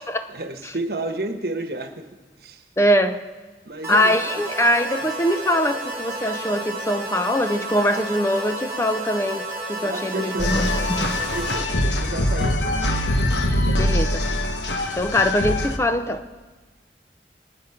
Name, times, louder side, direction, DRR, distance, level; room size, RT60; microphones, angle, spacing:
voice 1, 0.3-2.1 2.4-2.6 3.6-4.1 9.8-10.5 11.3-12.8 13.7-13.9, right 2 dB, 60° right, 7 dB, 1.3 m, -31 dB
voice 2, 2.8-3.2 3.9-11.0 13.8-14.2 15.0-16.2, equal, 15° left, 8 dB, 0.6 m, -22 dB
sound 1, 3.8-11.6, right 2 dB, 15° right, 3.6 m, -32 dB
sound 2, 10.4-15.8, left 1 dB, 85° left, 1.3 m, -23 dB
24.5 x 9.2 x 5.8 m, 1.3 s
head